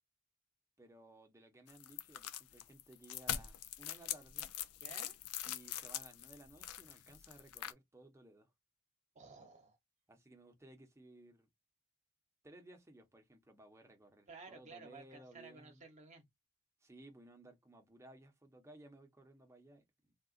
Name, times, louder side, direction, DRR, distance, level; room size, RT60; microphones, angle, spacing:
voice 1, 0.8-4.5 5.4-8.5 10.1-11.5 12.4-15.8 16.8-20.1, right 1 dB, 10° right, 0.8 m, -59 dB
sound 1, 1.7-7.7, left 11 dB, 75° left, 0.5 m, -43 dB
voice 2, 4.8-5.1 9.1-9.8 14.3-16.2, right 4 dB, 35° right, 1.0 m, -54 dB
3.6 x 2.4 x 2.4 m
head